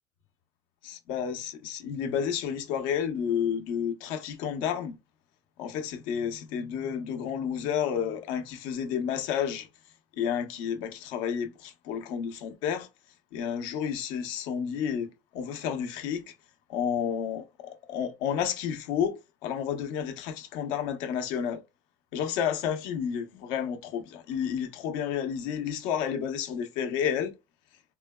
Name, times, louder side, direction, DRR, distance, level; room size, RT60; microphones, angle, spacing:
voice 1, 0.8-5.0 5.6-9.7 10.1-12.9 13.3-16.3 16.7-21.6 22.1-27.3, left 8 dB, 70° left, 0.8 m, -31 dB
3.9 x 2.2 x 2.2 m
supercardioid pair, 115°, 8 cm